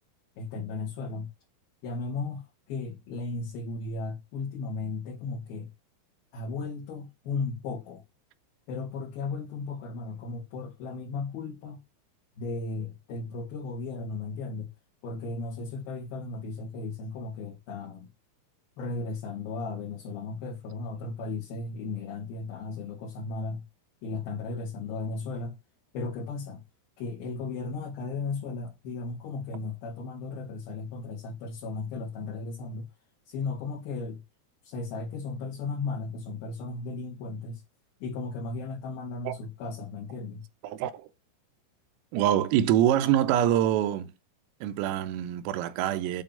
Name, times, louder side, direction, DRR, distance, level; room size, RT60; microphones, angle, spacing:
voice 1, 0.4-1.3 1.8-5.7 6.3-8.0 8.7-11.8 12.4-14.7 15.0-18.1 18.8-23.6 24.0-25.6 25.9-26.6 27.0-32.8 33.3-34.2 34.6-37.6 38.0-40.4, left 3 dB, 60° left, 3.0 m, -35 dB
voice 2, 40.6-41.1 42.1-44.1 44.6-46.2, right 11 dB, 85° right, 3.4 m, -25 dB
9.1 x 3.4 x 5.3 m
omnidirectional pair, 6.0 m